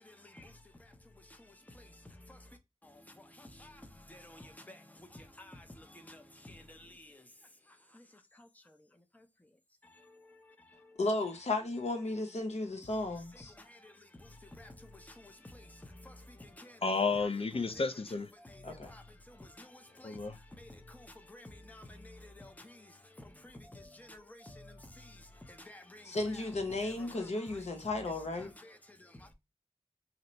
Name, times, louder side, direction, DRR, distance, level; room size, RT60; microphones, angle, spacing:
voice 1, 0.0-0.5 0.8-7.3 7.7-8.8 9.1-9.3 9.8-11.0 13.3-16.9 17.6-17.9 18.4-26.4 26.8-27.6 28.3-29.3, left 1 dB, 15° left, 0.6 m, -53 dB
voice 2, 11.0-13.5 18.6-18.9 26.0-28.5, left 2 dB, 75° left, 0.8 m, -34 dB
voice 3, 16.8-18.3 20.0-20.4, left 4 dB, 55° left, 0.4 m, -32 dB
2.8 x 2.1 x 3.9 m
wide cardioid pair, 55°, 11 cm